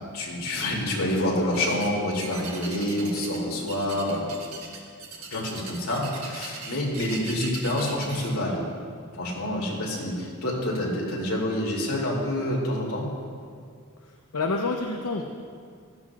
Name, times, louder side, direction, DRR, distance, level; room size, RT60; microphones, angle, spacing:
voice 1, 0.1-4.3 5.3-8.7 9.1-13.1, left 1 dB, 70° left, -3 dB, 2.7 m, -27 dB
sound 1, 1.5-1.9 2.2-3.4 3.7-8.3, right 5 dB, 70° right, 1.5 m, -39 dB
voice 2, 14.0-15.2, left 3 dB, 90° left, 2 dB, 0.7 m, -29 dB
15.5 x 12.5 x 2.4 m, 2.1 s
head